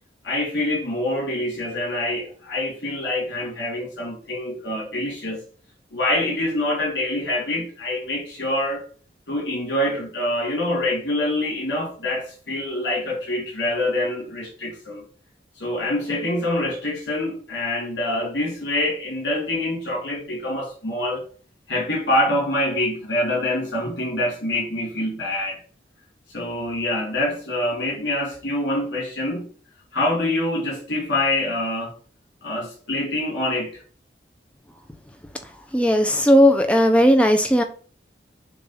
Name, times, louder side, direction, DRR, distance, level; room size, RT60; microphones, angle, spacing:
voice 1, 0.2-5.4 5.9-8.8 9.3-15.0 15.6-21.2 21.7-25.6 26.3-29.5 29.9-31.9 32.4-33.8, left 1 dB, 80° left, 3.2 m, -25 dB
voice 2, 35.7-37.6, equal, 5° left, 0.7 m, -16 dB
6.9 x 2.7 x 5.6 m
head